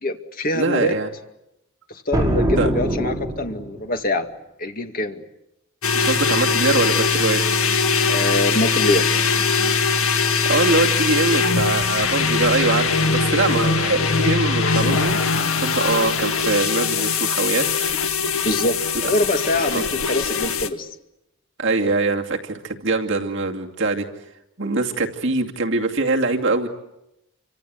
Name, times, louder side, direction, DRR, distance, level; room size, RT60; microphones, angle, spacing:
voice 1, 0.0-0.9 1.9-4.3 4.6-5.2 8.1-9.1 18.4-20.9, left 1 dB, 40° left, 6 dB, 2.3 m, -24 dB
voice 2, 0.6-1.1 2.6-2.7 6.0-7.4 10.2-15.2 15.6-17.9 18.9-19.1 19.7-19.8 21.6-24.0 24.6-26.7, right 3 dB, 55° right, 2 dB, 2.5 m, -23 dB
sound 1, 2.1-3.9, equal, 15° right, 5.1 m, -23 dB
sound 2, 5.8-20.7, left 5 dB, 70° left, 1.9 m, -21 dB
29.0 x 26.0 x 8.0 m, 0.88 s
head